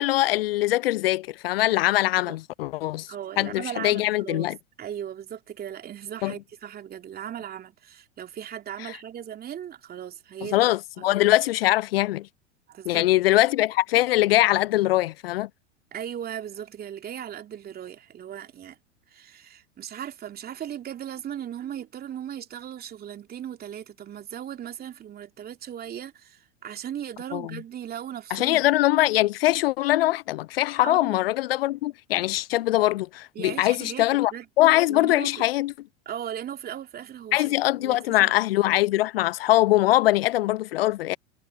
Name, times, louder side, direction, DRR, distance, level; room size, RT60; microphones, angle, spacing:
voice 1, 0.0-3.1 3.4-4.5 6.2-6.3 10.5-12.3 12.9-15.5 27.3-27.6 28.3-34.3 34.6-35.7 37.3-41.2, left 16 dB, 55° left, 0.8 m, -22 dB
voice 2, 3.1-4.5 4.8-10.7 11.0-11.1 12.7-13.1 15.9-18.8 19.1-28.7 30.8-31.3 33.3-34.5 34.9-35.3 36.0-38.3, right 10 dB, 25° right, 2.9 m, -37 dB
figure-of-eight pair, 85°, 36 cm